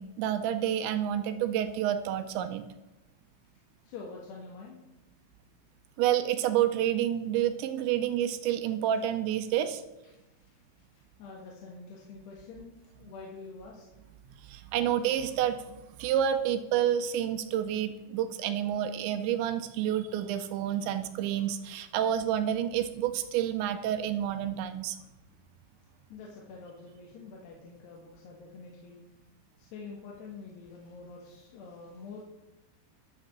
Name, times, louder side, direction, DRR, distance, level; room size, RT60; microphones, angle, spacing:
voice 1, 0.0-2.6 6.0-9.8 14.4-25.0, right 10 dB, 80° right, 9 dB, 2.9 m, -29 dB
voice 2, 3.8-4.8 10.1-10.8 11.2-13.9 26.1-29.0 29.6-32.2, left 4 dB, 65° left, -2 dB, 3.4 m, -46 dB
12.5 x 6.0 x 7.5 m, 1.0 s
omnidirectional pair, 5.5 m